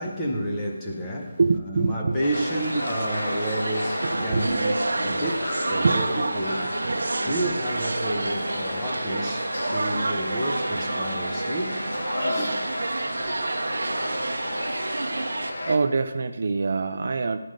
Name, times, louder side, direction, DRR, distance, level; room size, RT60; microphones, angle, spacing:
voice 1, 0.0-1.4 1.7-11.9 12.3-12.7, right 1 dB, 5° left, 0.7 m, -30 dB
voice 2, 1.4-2.3 4.0-4.6 5.1-5.4 5.8-6.0 6.8-7.1 15.6-17.4, right 4 dB, 30° right, 0.3 m, -25 dB
sound 1, 2.2-15.8, left 1 dB, 70° left, 1.5 m, -33 dB
sound 2, 2.3-15.5, right 2 dB, 60° right, 0.8 m, -29 dB
13.0 x 5.0 x 7.5 m
figure-of-eight pair, 180°, 0 cm